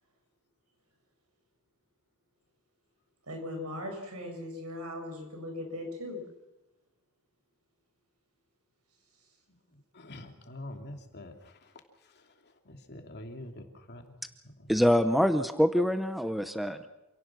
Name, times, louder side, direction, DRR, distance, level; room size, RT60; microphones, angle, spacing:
voice 1, 3.3-6.2, left 1 dB, 80° right, 3 dB, 7.3 m, -38 dB
voice 2, 9.9-11.7 12.1-12.2 12.7-14.0 14.4-14.7, left 1 dB, 50° left, 4 dB, 2.8 m, -45 dB
voice 3, 14.7-16.9, equal, ahead, 9 dB, 0.8 m, -25 dB
27.5 x 17.5 x 6.2 m, 0.98 s
head